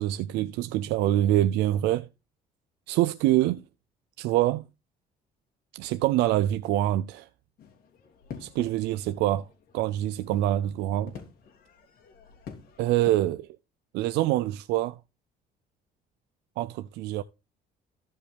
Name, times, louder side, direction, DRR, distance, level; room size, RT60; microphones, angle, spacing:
voice 1, 0.0-2.1 2.9-3.6 4.2-4.6 5.7-7.3 8.4-9.5 9.7-11.1 12.8-13.5 13.9-15.0 16.6-17.2, right 14 dB, 90° right, 0.5 m, -25 dB
sound 1, 7.6-13.2, left 6 dB, 60° left, 2.9 m, -47 dB
15.0 x 5.4 x 3.3 m
cardioid pair, 110°, 17 cm